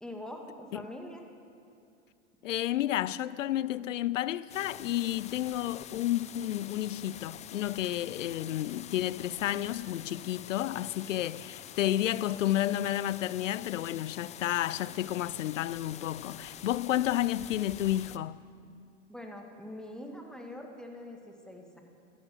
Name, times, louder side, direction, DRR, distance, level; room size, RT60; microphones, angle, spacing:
voice 1, 0.0-1.2 19.1-21.8, left 1 dB, ahead, 1.9 m, -44 dB
voice 2, 2.4-18.4, left 13 dB, 80° left, 0.5 m, -31 dB
sound 1, 4.5-18.2, left 10 dB, 20° left, 0.4 m, -46 dB
14.0 x 13.5 x 7.7 m
hypercardioid pair, 95°, 37 cm